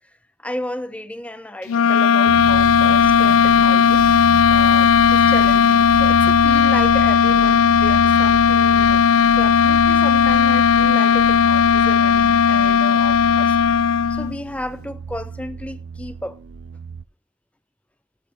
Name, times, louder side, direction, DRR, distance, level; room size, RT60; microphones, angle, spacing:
voice 1, 0.4-4.1 4.5-9.0 9.4-13.6 14.1-16.4, left 1 dB, 5° left, 0.6 m, -33 dB
sound 1, 1.7-14.4, left 7 dB, 80° left, 0.4 m, -15 dB
sound 2, 2.3-17.0, right 5 dB, 55° right, 0.4 m, -32 dB
18.0 x 6.5 x 3.5 m
head